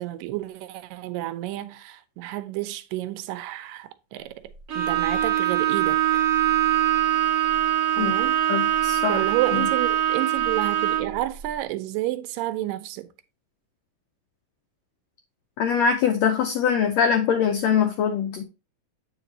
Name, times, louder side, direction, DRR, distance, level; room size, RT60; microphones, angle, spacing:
voice 1, 0.0-6.2 8.0-8.4 9.0-13.1, right 15 dB, 90° right, 2.3 m, -30 dB
Bowed string instrument, 4.7-11.2, right 12 dB, 55° right, 2.0 m, -23 dB
voice 2, 8.5-9.2 15.6-18.4, left 7 dB, 90° left, 1.5 m, -23 dB
7.9 x 5.0 x 2.8 m
omnidirectional pair, 3.8 m